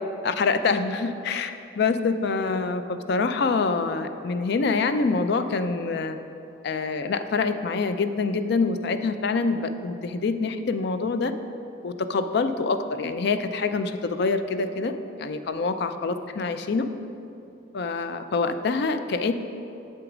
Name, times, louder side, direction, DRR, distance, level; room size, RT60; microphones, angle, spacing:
voice 1, 0.2-6.2 6.6-11.3 11.8-16.9 17.7-19.3, left 4 dB, 55° left, 10 dB, 0.4 m, -26 dB
7.9 x 6.9 x 5.0 m, 2.8 s
head